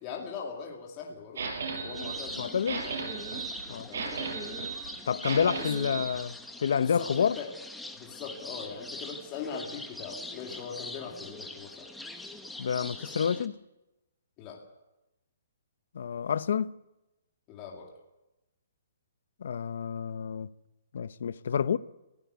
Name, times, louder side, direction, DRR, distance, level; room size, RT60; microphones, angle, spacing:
voice 1, 0.0-1.5 1.8-2.6 3.7-4.0 6.8-7.5 7.9-11.9 14.4-14.6 17.5-17.9, left 6 dB, 20° left, 2.6 m, -41 dB
sound 1, 1.4-6.2, right 4 dB, 60° right, 5.9 m, -36 dB
sound 2, 1.9-13.5, left 2 dB, 5° left, 1.0 m, -43 dB
voice 2, 2.4-2.8 3.7-3.9 5.1-7.4 12.6-13.6 15.9-16.8 19.4-20.5 20.9-21.8, left 7 dB, 60° left, 0.8 m, -29 dB
21.0 x 16.0 x 8.3 m
hypercardioid pair, 170°, 0 cm